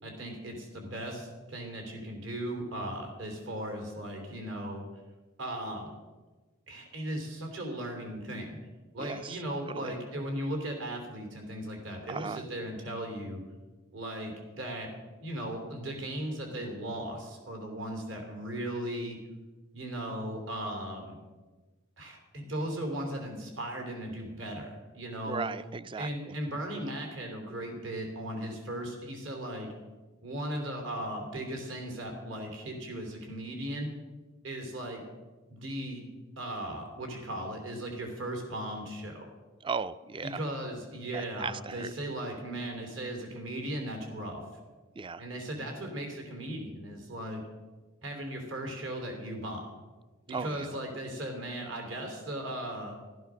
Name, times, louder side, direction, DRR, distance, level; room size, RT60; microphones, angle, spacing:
voice 1, 0.0-4.8 5.4-5.9 6.7-8.6 8.9-13.4 13.9-14.9 15.2-19.2 19.7-21.2 22.0-25.5 26.0-29.7 30.2-33.9 34.4-35.0 35.5-36.0 36.4-39.3 40.2-44.4 45.2-47.4 48.0-49.6 50.3-53.0, right 1 dB, 70° right, 3 dB, 3.3 m, -37 dB
voice 2, 9.0-9.4 9.7-10.0 12.1-12.5 25.3-26.4 39.6-40.4 41.1-41.9 45.0-45.2 50.3-50.7, right 5 dB, 25° right, 16 dB, 0.4 m, -37 dB
15.0 x 13.0 x 6.3 m, 1.2 s
head